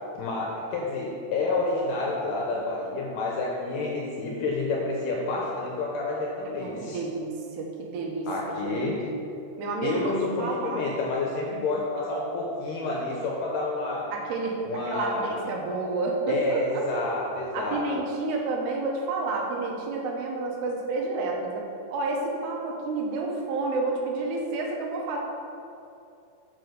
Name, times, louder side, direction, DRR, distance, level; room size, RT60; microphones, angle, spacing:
voice 1, 0.2-7.0 8.3-9.0 9.8-14.1 14.7-15.5 16.3-17.9, left 3 dB, 75° left, -2 dB, 2.1 m, -29 dB
voice 2, 6.6-8.3 8.6-8.9 9.6-10.0 10.4-10.9 14.1-16.9 17.5-21.6 21.9-25.2, right 3 dB, 85° right, 0 dB, 3.0 m, -30 dB
8.2 x 4.3 x 6.7 m, 2.6 s
omnidirectional pair, 4.6 m